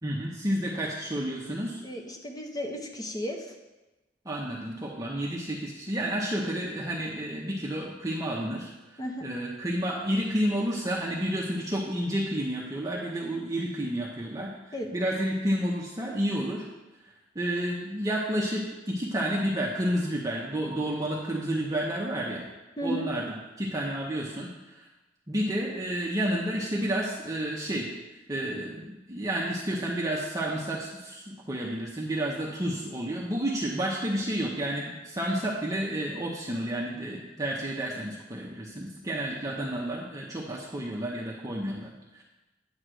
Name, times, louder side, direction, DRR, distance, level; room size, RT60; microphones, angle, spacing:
voice 1, 0.0-1.8 4.3-8.7 9.2-14.5 14.9-16.6 17.3-22.5 22.8-24.9 25.3-27.9 28.3-42.2, right 1 dB, 20° right, -4 dB, 0.7 m, -30 dB
voice 2, 1.8-3.5 9.0-9.3 14.7-14.9 22.8-23.1, equal, 20° left, 2 dB, 0.8 m, -34 dB
8.8 x 3.1 x 6.2 m, 1.1 s
head